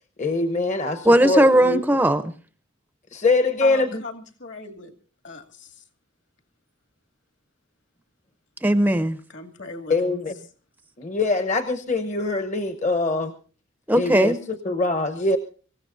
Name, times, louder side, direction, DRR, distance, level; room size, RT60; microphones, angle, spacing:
voice 1, 0.2-1.8 3.1-4.0 9.9-10.3 11.0-13.3 13.9-15.4, left 3 dB, 35° left, 8 dB, 1.0 m, -23 dB
voice 2, 1.0-2.3 8.6-9.2 13.9-14.4, right 1 dB, 10° right, 11 dB, 0.6 m, -18 dB
voice 3, 3.6-4.9 5.2-5.8 9.3-9.9, left 4 dB, 60° left, 7 dB, 2.4 m, -37 dB
25.5 x 15.5 x 2.6 m, 0.40 s
head